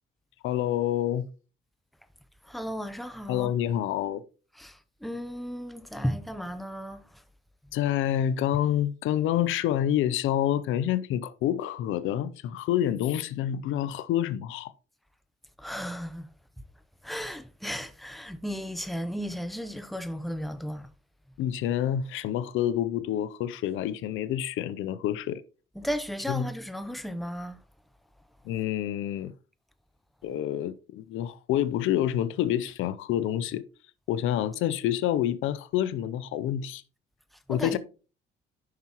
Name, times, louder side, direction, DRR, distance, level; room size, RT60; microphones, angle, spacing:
voice 1, 0.4-1.3 3.3-4.2 7.7-14.7 21.4-25.4 26.3-26.5 28.4-29.3 30.2-33.6 34.1-36.8 37.5-37.8, left 11 dB, 85° left, 0.6 m, -28 dB
voice 2, 2.4-3.5 4.6-7.2 15.6-16.3 17.0-20.9 25.8-27.6 37.5-37.8, equal, ahead, 0.7 m, -35 dB
9.4 x 5.8 x 3.0 m
cardioid pair, 90°, 20 cm